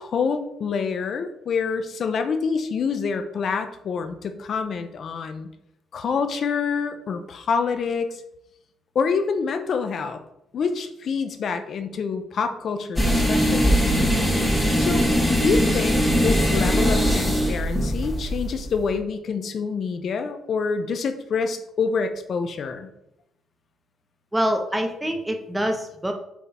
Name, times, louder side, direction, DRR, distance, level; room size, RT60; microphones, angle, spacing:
voice 1, 0.0-5.5 5.9-8.2 8.9-10.2 10.5-13.9 14.8-22.9, left 5 dB, 60° left, 8 dB, 0.7 m, -27 dB
sound 1, 13.0-18.9, equal, 10° left, 1.6 m, -21 dB
voice 2, 24.3-26.1, equal, 10° right, 4 dB, 1.1 m, -25 dB
7.2 x 3.8 x 4.3 m, 0.83 s
cardioid pair, 90°, 0 cm